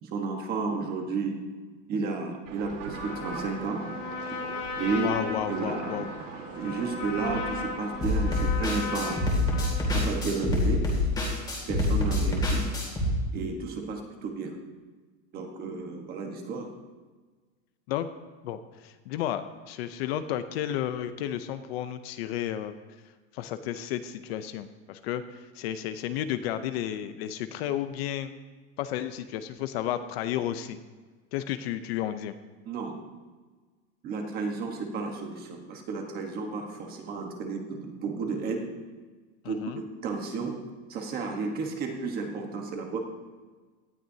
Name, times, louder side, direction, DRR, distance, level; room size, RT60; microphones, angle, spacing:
voice 1, 0.0-1.3 1.9-3.8 4.7-5.2 5.5-6.1 6.5-9.3 9.9-10.8 11.7-12.7 13.3-14.5 15.3-16.7 32.6-33.0 34.0-38.7 39.4-40.6 40.9-43.0, right 4 dB, 25° right, 3 dB, 1.3 m, -32 dB
sound 1, 2.5-8.4, right 5 dB, 75° right, 2.2 m, -42 dB
Trumpet, 2.9-10.0, left 4 dB, 70° left, 4.6 m, -36 dB
voice 2, 4.9-6.1 17.9-18.1 18.4-22.7 23.3-28.3 28.8-30.8 31.3-32.3 39.4-39.8, left 11 dB, 50° left, 10 dB, 0.7 m, -32 dB
sound 2, 8.0-13.1, left 2 dB, 10° left, 2.4 m, -26 dB
18.0 x 12.5 x 2.8 m, 1.4 s
supercardioid pair, 180°, 39 cm